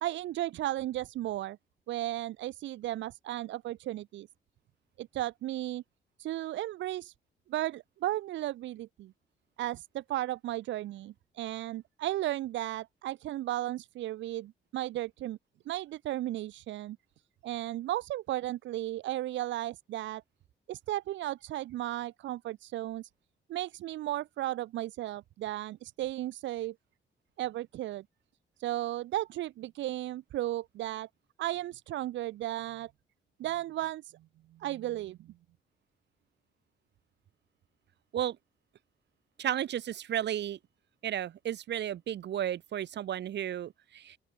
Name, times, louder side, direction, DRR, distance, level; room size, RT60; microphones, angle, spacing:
voice 1, 0.0-1.6 1.9-4.3 5.0-5.8 6.2-7.1 7.5-9.1 9.6-15.4 15.7-17.0 17.4-20.2 20.7-23.1 23.5-26.7 27.4-28.0 28.6-31.1 31.4-32.9 33.4-34.1 34.6-35.3, right 14 dB, 85° right, 0.7 m, -35 dB
voice 2, 39.4-40.6 41.0-44.2, right 11 dB, 70° right, 1.8 m, -33 dB
open air
cardioid pair, 110°, 19 cm